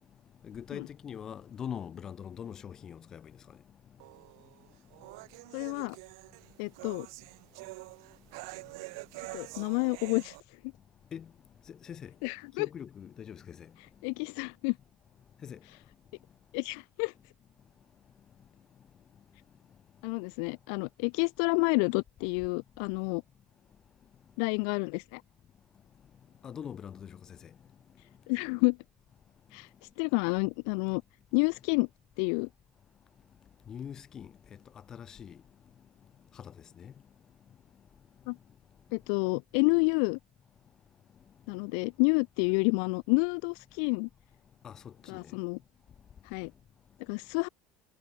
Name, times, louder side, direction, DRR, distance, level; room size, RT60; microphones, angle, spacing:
voice 1, 0.4-3.3 11.1-11.3 11.7-12.1 12.6-13.7 15.4-15.6 26.4-27.4 33.7-34.3 34.9-35.4 36.3-36.9 44.6-45.3, left 8 dB, 25° left, 5.0 m, -42 dB
sound 1, 4.0-10.4, right 26 dB, 85° right, 2.0 m, -46 dB
voice 2, 5.5-6.0 6.6-7.1 9.3-10.4 12.2-12.7 14.0-14.7 16.5-17.1 20.0-23.2 24.4-25.2 28.3-28.8 29.5-29.7 30.0-31.0 31.3-31.9 32.2-32.5 38.3-38.4 38.9-40.2 41.5-44.1 45.1-45.6 46.2-46.5 47.1-47.5, left 40 dB or more, 65° left, 0.7 m, -29 dB
cardioid pair, 170°, 2 cm